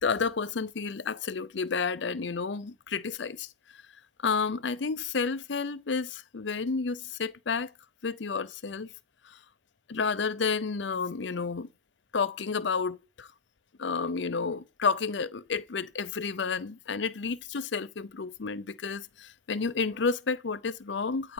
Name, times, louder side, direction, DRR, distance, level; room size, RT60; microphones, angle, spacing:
voice 1, 0.0-3.5 4.2-7.7 8.0-8.9 9.3-9.4 9.9-11.7 12.1-13.3 13.8-21.3, left 5 dB, 75° left, 0.6 m, -31 dB
14.0 x 4.9 x 8.8 m
head